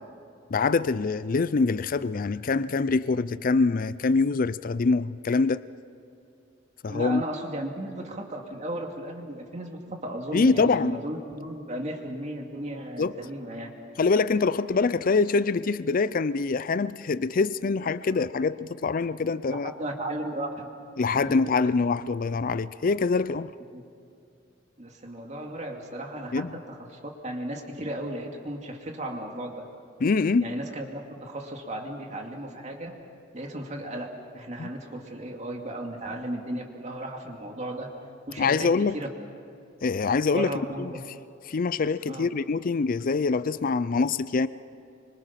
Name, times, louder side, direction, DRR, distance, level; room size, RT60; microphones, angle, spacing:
voice 1, 0.5-5.6 6.8-7.2 10.3-11.0 13.0-13.1 14.0-19.7 21.0-23.5 26.3-26.5 30.0-30.6 34.6-34.7 38.4-39.0 39.8-40.9 41.5-44.5, left 4 dB, 45° left, 16 dB, 0.5 m, -24 dB
voice 2, 6.9-13.7 19.5-20.7 21.1-21.5 23.7-23.8 24.8-29.6 30.4-32.9 33.3-37.9 38.3-39.1 40.3-41.0 42.1-42.3, right 1 dB, 40° right, 2 dB, 2.4 m, -35 dB
26.5 x 24.5 x 5.8 m, 2.6 s
head